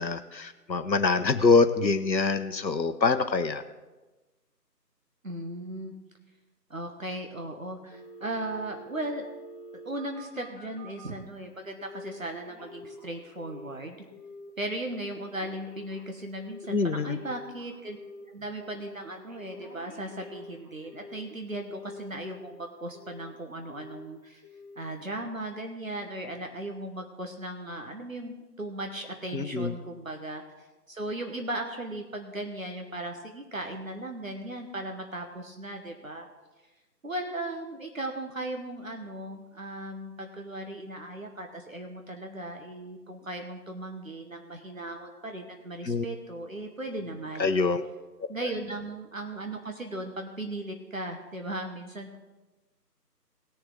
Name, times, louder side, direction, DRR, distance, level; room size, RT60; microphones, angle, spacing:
voice 1, 0.0-3.6 16.7-17.2 29.3-29.7 45.8-46.0 47.4-47.8, left 4 dB, 90° left, 10 dB, 0.9 m, -25 dB
voice 2, 5.2-5.9 6.7-9.3 9.8-14.0 14.6-18.0 18.3-24.4 24.8-36.3 37.0-47.5 48.3-52.2, right 1 dB, 50° right, 4 dB, 1.2 m, -37 dB
Telephone, 7.9-11.2 11.8-12.2 12.4-13.8 14.1-14.5 14.9-18.2 18.6-19.0 19.3-21.3 21.7-22.6 22.9-23.3 23.7-24.1 24.4-24.8 25.2-25.3, left 1 dB, 20° right, 1.5 m, -47 dB
19.5 x 6.9 x 3.8 m, 1.2 s
figure-of-eight pair, 160°, 50 cm